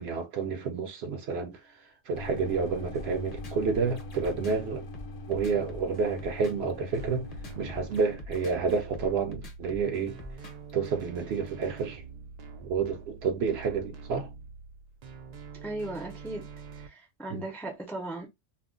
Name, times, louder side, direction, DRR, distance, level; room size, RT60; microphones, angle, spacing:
voice 1, 0.0-1.6 2.1-4.9 5.3-7.3 7.6-10.2 10.7-12.0 12.7-14.3 17.3-17.4, right 5 dB, 65° right, 0.7 m, -29 dB
sound 1, 2.1-8.2, left 1 dB, 80° left, 0.9 m, -42 dB
sound 2, 2.9-10.7, left 1 dB, 40° left, 0.7 m, -44 dB
sound 3, 7.0-16.9, right 5 dB, 85° right, 0.3 m, -45 dB
voice 2, 15.5-16.4 16.8-18.3, right 2 dB, ahead, 0.4 m, -37 dB
2.4 x 2.0 x 3.6 m
omnidirectional pair, 1.3 m